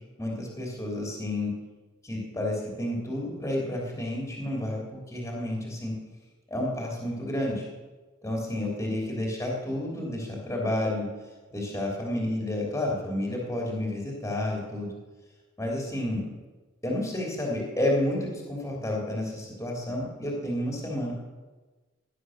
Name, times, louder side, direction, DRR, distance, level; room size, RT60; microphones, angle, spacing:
voice 1, 0.2-1.5 2.0-5.9 6.5-7.7 8.2-11.1 11.5-14.9 15.6-16.2 16.8-21.1, left 1 dB, 15° left, -2 dB, 3.3 m, -30 dB
17.0 x 11.0 x 6.5 m, 1.3 s
head